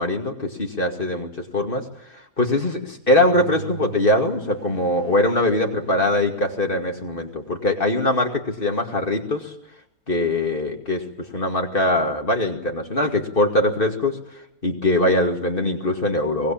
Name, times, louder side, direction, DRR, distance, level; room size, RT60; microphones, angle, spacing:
voice 1, 0.0-9.5 10.1-14.2 14.6-16.5, left 1 dB, 35° left, 3 dB, 2.5 m, -22 dB
sound 1, 3.2-8.7, right 4 dB, 20° left, 6.4 m, -41 dB
23.5 x 19.0 x 8.8 m, 0.77 s
omnidirectional pair, 1.7 m